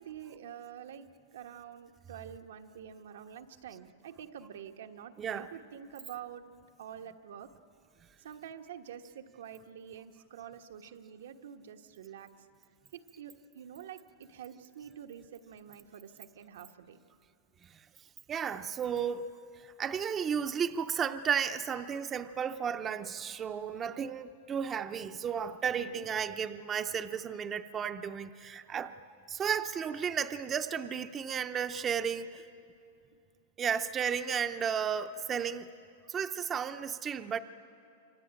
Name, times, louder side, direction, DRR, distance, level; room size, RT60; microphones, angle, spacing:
voice 1, 0.0-6.4 6.8-7.5 8.2-12.5 12.9-17.0 23.7-24.1 25.7-26.1, right 9 dB, 85° right, 6 dB, 1.4 m, -47 dB
voice 2, 18.3-19.3 19.6-28.9 29.3-32.4 33.6-35.7 36.1-37.4, right 7 dB, 20° right, 9 dB, 0.6 m, -33 dB
27.0 x 24.5 x 8.9 m, 2.6 s
supercardioid pair, 160°, 0 cm